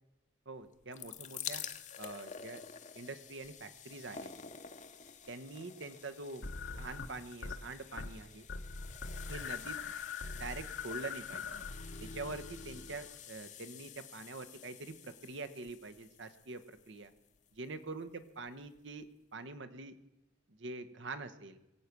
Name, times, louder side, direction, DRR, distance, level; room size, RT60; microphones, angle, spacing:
voice 1, 0.5-1.6 2.0-2.6 2.9-4.3 5.3-6.5 6.7-8.5 9.3-9.8 10.3-11.4 12.0-17.1 17.6-19.1 19.3-19.9 20.5-21.6, right 3 dB, 65° right, 9 dB, 1.1 m, -45 dB
sound 1, 0.7-17.7 18.5-18.6 18.8-18.9, left 8 dB, 40° left, 0.9 m, -50 dB
sound 2, 6.4-7.6 7.9-8.2 8.5-13.2, left 5 dB, 60° left, 1.1 m, -43 dB
22.5 x 8.3 x 6.0 m, 0.91 s
head